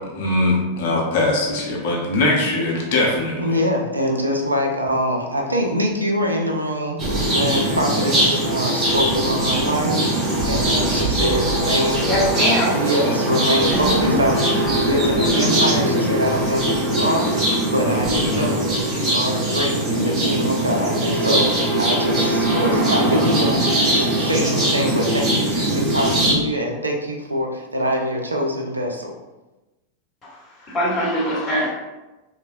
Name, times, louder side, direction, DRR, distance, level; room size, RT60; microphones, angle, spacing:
voice 1, 0.1-3.6, left 2 dB, 50° left, -2 dB, 0.6 m, -21 dB
voice 2, 3.4-12.1 12.7-23.7 23.9-29.1, equal, 80° right, 1 dB, 0.4 m, -24 dB
sound 1, 7.0-26.3, right 1 dB, 25° right, 0.9 m, -21 dB
voice 3, 12.0-12.7 13.7-14.2 30.7-31.7, equal, 25° left, -5 dB, 0.9 m, -21 dB
3.0 x 2.1 x 2.5 m, 1.1 s
figure-of-eight pair, 90°, 0 cm